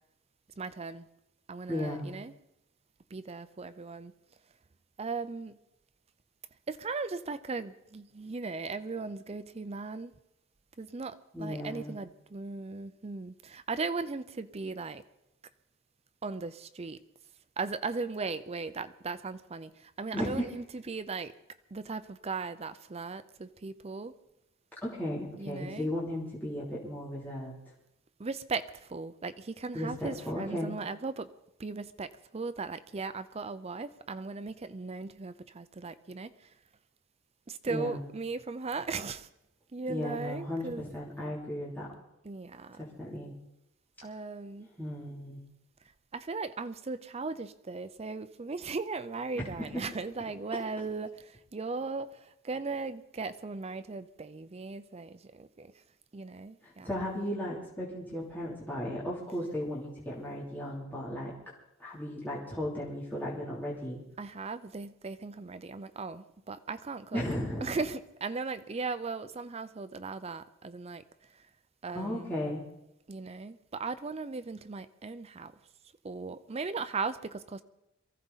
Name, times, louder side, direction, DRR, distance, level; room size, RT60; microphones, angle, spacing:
voice 1, 0.6-1.1 1.5-2.3 3.1-4.1 5.0-5.6 6.7-10.1 10.8-15.0 16.2-17.0 17.6-21.3 21.7-24.1 25.4-25.9 28.2-31.3 31.6-36.5 37.5-39.3 39.7-40.8 42.2-42.8 44.0-44.7 46.1-55.7 56.1-56.9 64.2-67.2 67.6-71.0 71.3-71.4 71.8-72.4 73.1-75.5 76.0-77.6, right 4 dB, 30° right, 12 dB, 0.5 m, -37 dB
voice 2, 1.7-2.1 11.3-11.9 20.1-20.5 24.8-27.5 29.7-30.7 37.7-38.0 39.9-41.9 42.8-43.3 44.8-45.4 49.6-49.8 56.6-61.3 61.8-64.0 67.1-67.7 71.9-72.6, left 1 dB, 10° left, -7 dB, 3.2 m, -35 dB
23.0 x 15.0 x 4.1 m, 0.87 s
head